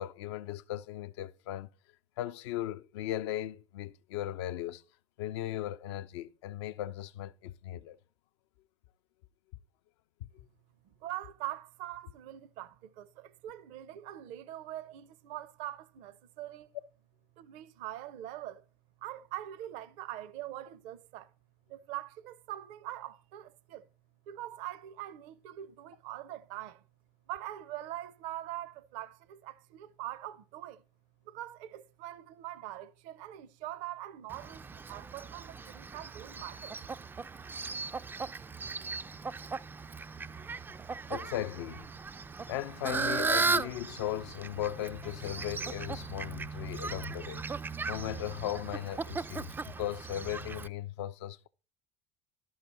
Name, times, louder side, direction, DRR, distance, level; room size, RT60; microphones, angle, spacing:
voice 1, 0.0-1.7 2.2-4.8 5.2-8.0 10.2-10.3 41.1-41.9 42.5-47.5 47.9-51.5, left 12 dB, 65° left, 0.5 m, -37 dB
voice 2, 10.8-16.7 17.4-18.6 19.0-21.3 21.7-23.8 24.3-26.8 27.3-30.8 31.3-36.8, right 13 dB, 55° right, 0.6 m, -43 dB
Fowl, 34.3-50.7, right 4 dB, 15° right, 0.3 m, -37 dB
12.0 x 5.6 x 4.2 m
figure-of-eight pair, 65°, 16 cm